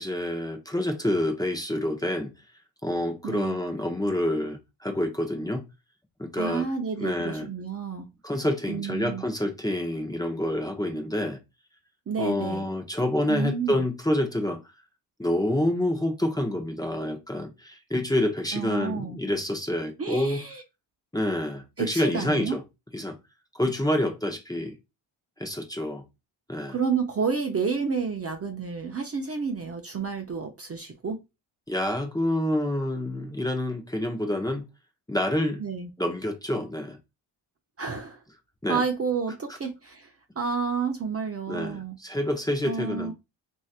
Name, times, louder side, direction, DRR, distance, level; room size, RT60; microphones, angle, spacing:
voice 1, 0.0-2.3 2.8-5.6 6.2-6.7 7.0-7.5 8.2-11.4 12.2-14.6 15.2-20.4 21.1-22.6 22.9-23.2 23.5-24.8 25.4-26.0 26.5-26.8 31.7-34.6 35.1-35.6 36.0-37.0 38.6-38.8 41.5-43.1, left 1 dB, 10° left, 0.7 m, -27 dB
voice 2, 3.2-3.6 6.4-8.1 8.7-9.2 12.1-12.7 13.3-13.8 18.5-19.2 20.0-20.6 21.8-22.6 26.7-31.2 35.6-35.9 37.8-38.2 38.7-40.1 40.4-42.0 42.6-43.1, right 5 dB, 30° right, 0.6 m, -30 dB
3.1 x 2.7 x 2.3 m
cardioid pair, 60°, 46 cm